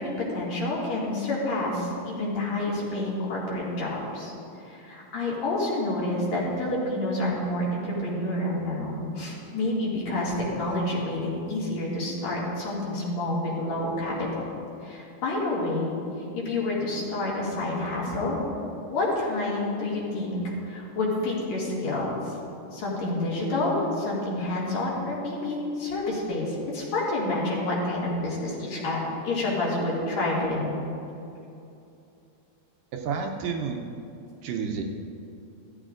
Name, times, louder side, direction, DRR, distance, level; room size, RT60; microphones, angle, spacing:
voice 1, 0.0-4.3 4.7-11.2 11.5-14.3 14.8-16.0 16.3-18.4 18.9-22.3 22.7-29.0 29.2-30.8, left 2 dB, 50° left, -6 dB, 3.1 m, -28 dB
voice 2, 32.9-33.8 34.4-34.8, right 6 dB, 75° right, 2 dB, 2.1 m, -30 dB
16.5 x 12.5 x 2.5 m, 2.7 s
omnidirectional pair, 4.5 m